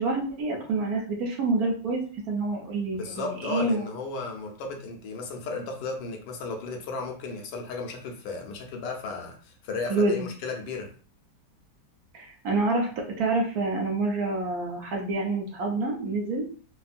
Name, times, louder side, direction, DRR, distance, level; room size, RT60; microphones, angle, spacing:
voice 1, 0.0-2.0 2.3-3.9 9.9-10.3 12.1-16.5, right 3 dB, 70° right, 1.0 m, -27 dB
voice 2, 2.9-10.9, left 3 dB, 75° left, 1.2 m, -34 dB
3.5 x 2.2 x 2.4 m
omnidirectional pair, 2.0 m